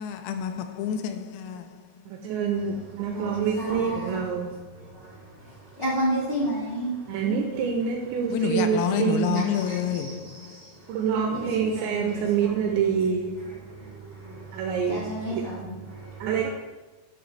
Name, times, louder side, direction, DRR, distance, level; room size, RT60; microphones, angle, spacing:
voice 1, 0.0-2.0 8.3-10.9, left 9 dB, 85° left, 3.4 m, -29 dB
voice 2, 2.1-4.6 7.1-9.6 10.9-13.8 14.5-15.5 16.2-16.5, right 6 dB, 85° right, 2.6 m, -27 dB
voice 3, 3.1-4.2 4.8-7.1 9.5-11.0 11.3-12.6 13.6-16.3, right 1 dB, 50° left, 0.6 m, -33 dB
11.5 x 4.0 x 6.6 m
omnidirectional pair, 5.9 m